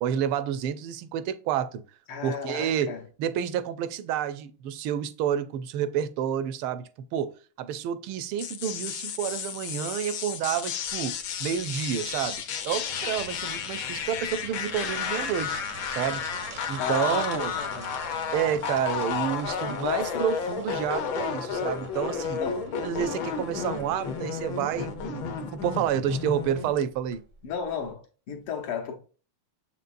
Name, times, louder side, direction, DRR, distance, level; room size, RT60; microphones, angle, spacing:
voice 1, 0.0-1.8 2.2-2.9 3.2-7.3 7.6-11.1 11.4-15.6 15.9-16.2 16.7-17.5 18.3-22.4 22.8-27.2, right 9 dB, 80° right, 1.4 m, -29 dB
voice 2, 2.1-3.0 16.8-17.9 19.6-20.3 22.4-22.7 27.4-29.0, left 7 dB, 85° left, 2.1 m, -33 dB
sound 1, 8.4-26.8, left 7 dB, 70° left, 1.4 m, -32 dB
sound 2, 10.9-27.9, right 3 dB, 60° right, 0.4 m, -46 dB
7.1 x 5.3 x 2.5 m
omnidirectional pair, 2.4 m